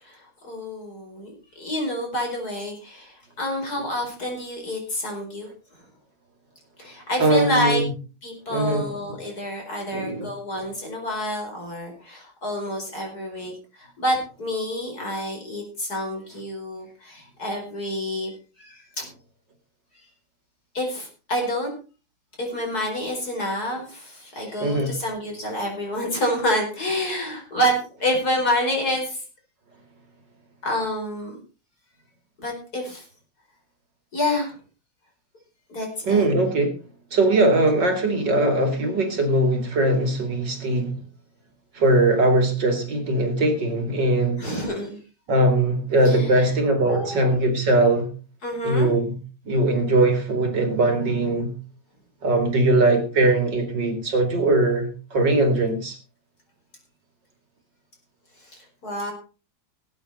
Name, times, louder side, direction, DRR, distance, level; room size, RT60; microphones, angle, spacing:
voice 1, 0.0-5.5 6.8-7.8 8.2-19.0 20.7-21.7 22.4-29.2 30.6-31.4 32.4-33.0 34.1-34.6 35.7-36.3 44.4-45.0 46.0-46.5 46.9-47.4 48.4-48.9 58.4-59.1, left 1 dB, 45° left, 1 dB, 5.1 m, -28 dB
voice 2, 7.2-7.9 8.5-8.8 9.9-10.3 24.6-24.9 36.0-36.7 37.1-41.0 41.7-44.4 45.3-48.1 48.6-49.2 49.4-51.5 52.2-56.0, right 2 dB, 55° right, 5 dB, 3.0 m, -20 dB
19.0 x 8.8 x 4.2 m, 0.35 s
omnidirectional pair, 2.3 m